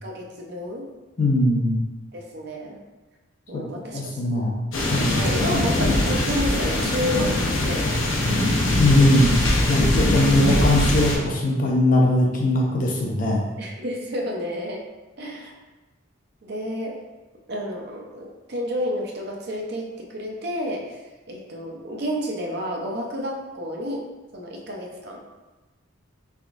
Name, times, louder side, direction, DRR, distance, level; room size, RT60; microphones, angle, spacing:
voice 1, 0.0-0.9 2.1-2.8 3.5-4.4 5.1-7.4 7.6-8.0 13.6-14.9 15.2-15.5 16.4-17.0 17.5-21.0 21.3-24.1 24.3-25.2, equal, 50° right, 0 dB, 0.5 m, -30 dB
voice 2, 1.2-1.8 3.5-3.6 3.9-4.6 4.9-5.2 8.8-9.3 9.7-13.4, left 1 dB, 40° left, -1 dB, 0.6 m, -20 dB
sound 1, 4.7-11.1, left 1 dB, 75° left, 0.7 m, -22 dB
3.5 x 3.4 x 2.5 m, 1.1 s
head